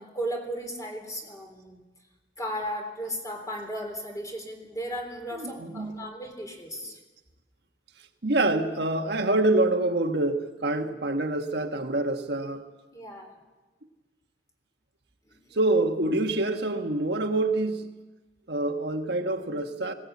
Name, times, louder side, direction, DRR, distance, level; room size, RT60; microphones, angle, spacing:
voice 1, 0.0-1.8 2.4-6.9 12.9-13.4 15.3-15.8, equal, 20° left, 3.7 m, -36 dB
voice 2, 5.3-6.1 8.2-12.7 15.5-18.0 18.5-19.9, right 2 dB, 70° right, 1.4 m, -26 dB
20.5 x 18.5 x 8.4 m
head